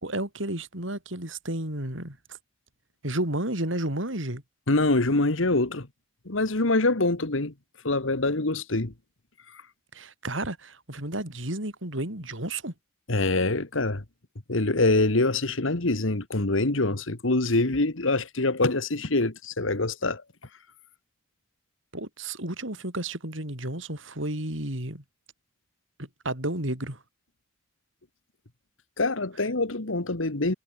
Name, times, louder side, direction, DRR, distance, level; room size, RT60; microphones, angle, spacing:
voice 1, 0.0-2.2 3.0-4.4 9.9-12.7 21.9-25.0 26.0-27.0, right 1 dB, 75° right, 6.0 m, -32 dB
voice 2, 4.7-5.9 6.3-7.5 7.8-8.9 9.5-9.6 13.1-14.0 14.5-20.2 29.0-30.5, left 2 dB, 80° left, 1.8 m, -25 dB
head